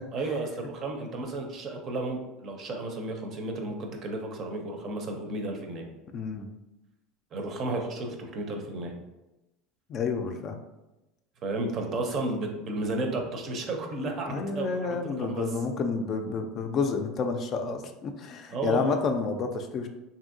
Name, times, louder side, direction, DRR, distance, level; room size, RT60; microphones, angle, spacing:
voice 1, 0.1-5.9 7.3-8.9 11.4-15.5 18.5-19.0, right 2 dB, 45° right, 3 dB, 0.6 m, -33 dB
voice 2, 6.1-6.5 9.9-10.6 14.3-19.9, left 4 dB, 45° left, 5 dB, 0.3 m, -30 dB
2.8 x 2.7 x 2.6 m, 0.98 s
supercardioid pair, 110°, 0 cm